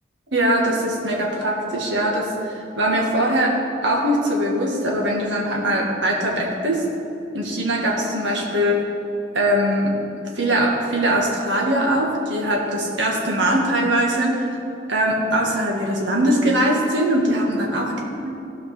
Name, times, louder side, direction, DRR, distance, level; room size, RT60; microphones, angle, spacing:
voice 1, 0.3-3.5 3.8-6.8 7.3-8.8 9.3-9.9 10.4-14.5 14.9-17.9, right 1 dB, 75° right, -1 dB, 1.7 m, -21 dB
15.0 x 5.1 x 6.2 m, 2.8 s
head